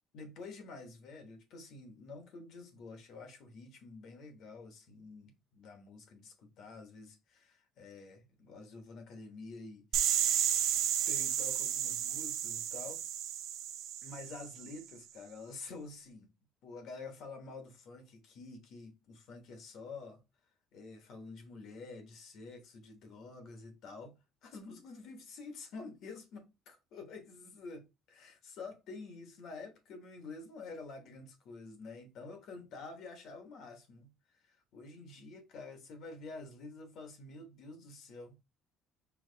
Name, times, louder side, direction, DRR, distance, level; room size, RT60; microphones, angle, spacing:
voice 1, 0.1-10.5 11.1-13.0 14.0-16.3 16.6-20.2 20.7-38.4, left 3 dB, 60° left, 1.2 m, -49 dB
sound 1, 9.9-14.7, right 10 dB, 75° right, 0.6 m, -32 dB
4.7 x 2.9 x 3.8 m
cardioid pair, 160°, 0 cm